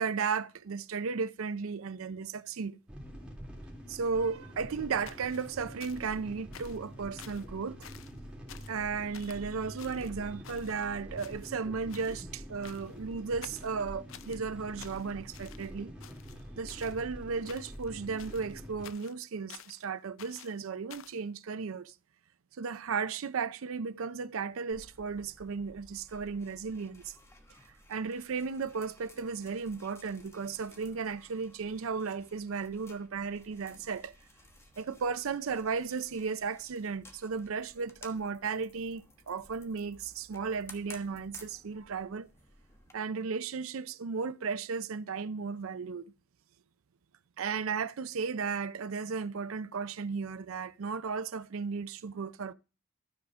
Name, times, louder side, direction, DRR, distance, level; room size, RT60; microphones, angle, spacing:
voice 1, 0.0-2.8 3.9-7.9 8.7-15.9 16.6-21.9 22.6-27.1 27.9-34.1 34.8-42.3 42.9-46.1 47.4-52.5, right 5 dB, 80° right, 0.5 m, -35 dB
sound 1, 2.9-18.9, equal, 5° right, 2.1 m, -46 dB
sound 2, 5.1-6.2 6.5-6.9 7.2-7.5 7.8-8.2 8.5-8.8 9.1-9.4 9.8-10.9 11.2-11.6 11.9-12.2 12.6-13.0 13.4-14.4 14.8-15.7 16.0-17.0 17.4-17.9 18.2-19.8 20.2-21.2, left 9 dB, 70° left, 0.6 m, -51 dB
sound 3, 24.7-42.9, left 1 dB, 15° left, 1.2 m, -56 dB
12.5 x 4.9 x 6.1 m
head